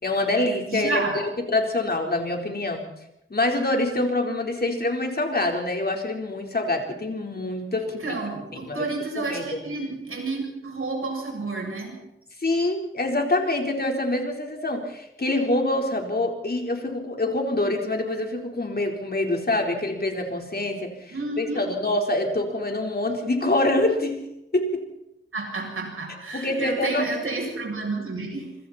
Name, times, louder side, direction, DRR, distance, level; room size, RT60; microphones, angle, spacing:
voice 1, 0.0-2.9 3.3-8.1 8.7-8.9 9.2-9.5 12.4-24.3 24.5-24.9 26.3-27.1, left 2 dB, 50° left, 2 dB, 4.3 m, -25 dB
voice 2, 0.7-1.2 7.8-12.1 21.1-21.7 25.3-28.6, right 3 dB, 85° right, 0 dB, 8.0 m, -30 dB
26.5 x 24.5 x 4.4 m, 0.84 s
wide cardioid pair, 80°, 21 cm